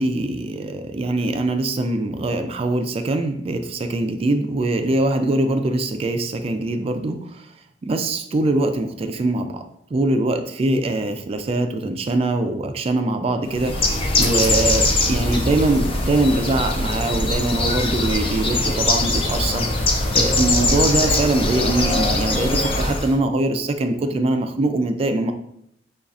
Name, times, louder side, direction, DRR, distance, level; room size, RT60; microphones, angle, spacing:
voice 1, 0.0-7.2 7.8-9.6 9.9-19.7 20.1-25.3, right 2 dB, 35° right, 7 dB, 0.3 m, -22 dB
Bird, 13.5-23.2, left 2 dB, 30° left, 0.4 m, -21 dB
5.3 x 2.3 x 2.4 m, 0.72 s
head